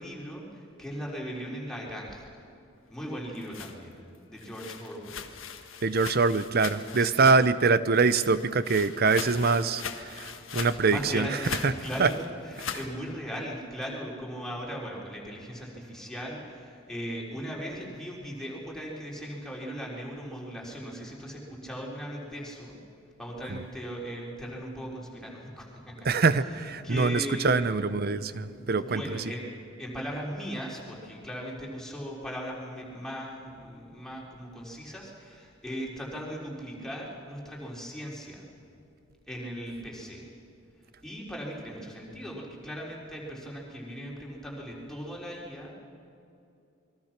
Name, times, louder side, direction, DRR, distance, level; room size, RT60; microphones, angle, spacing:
voice 1, 0.0-2.3 2.9-4.0 4.3-5.2 7.0-7.2 10.9-22.8 23.2-26.2 26.8-27.7 28.3-29.5 29.8-38.5 39.3-40.2 41.0-45.7, equal, 5° left, -3 dB, 4.0 m, -38 dB
sound 1, 3.1-7.6 7.9-12.9, left 7 dB, 80° left, 1.6 m, -40 dB
voice 2, 5.8-11.3 11.6-11.7 12.0-12.1 23.5-23.6 26.0-29.0, right 4 dB, 50° right, 14 dB, 0.8 m, -24 dB
28.5 x 22.0 x 6.0 m, 2.5 s
head